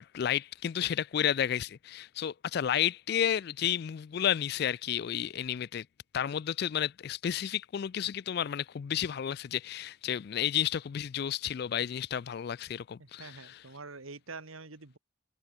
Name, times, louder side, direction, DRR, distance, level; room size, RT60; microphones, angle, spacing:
voice 1, 0.1-5.9 6.1-13.6, left 9 dB, 50° left, 0.3 m, -31 dB
voice 2, 13.0-15.0, right 3 dB, 85° right, 2.1 m, -46 dB
head